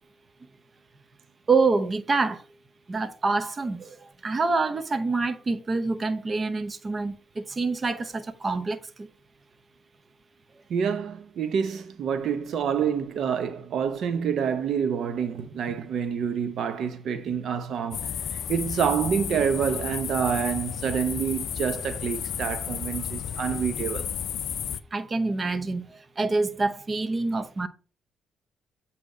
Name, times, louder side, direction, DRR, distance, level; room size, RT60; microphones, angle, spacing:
voice 1, 1.5-2.4 2.9-9.1 24.9-27.7, right 3 dB, 30° right, 0.8 m, -26 dB
voice 2, 10.7-24.1, right 7 dB, 65° right, 0.7 m, -27 dB
sound 1, 17.9-24.8, left 9 dB, 70° left, 0.4 m, -33 dB
8.1 x 2.8 x 4.8 m
cardioid pair, 90°, 0 cm